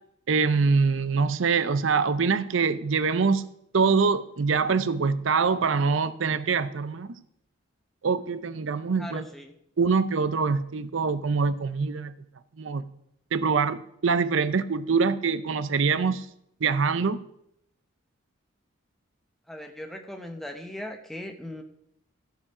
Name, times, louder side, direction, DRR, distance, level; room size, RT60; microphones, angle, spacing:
voice 1, 0.3-3.4 3.7-7.1 8.0-9.2 9.8-12.1 12.6-12.9 13.3-16.3 16.6-17.2, right 5 dB, 75° right, 13 dB, 0.6 m, -24 dB
voice 2, 9.0-9.5 19.5-21.6, left 1 dB, ahead, 4 dB, 0.9 m, -39 dB
14.5 x 4.9 x 4.9 m, 0.74 s
head